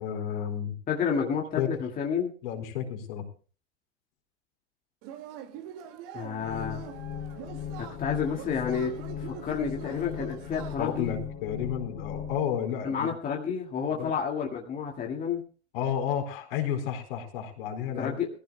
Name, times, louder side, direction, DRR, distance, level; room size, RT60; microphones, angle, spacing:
voice 1, 0.0-0.8 1.6-1.7 2.4-3.2 10.8-13.1 13.9-14.1 15.7-18.2, left 9 dB, 55° left, 4 dB, 4.1 m, -31 dB
voice 2, 0.9-2.3 6.1-6.9 7.8-11.1 12.8-15.4 18.0-18.3, left 6 dB, 25° left, 0 dB, 2.0 m, -30 dB
Yell / Cheering, 5.0-11.1, right 10 dB, 45° right, 2.0 m, -44 dB
sound 1, 6.4-12.4, left 8 dB, 40° left, 3.7 m, -38 dB
22.0 x 15.5 x 2.2 m, 0.37 s
figure-of-eight pair, 95°, 34 cm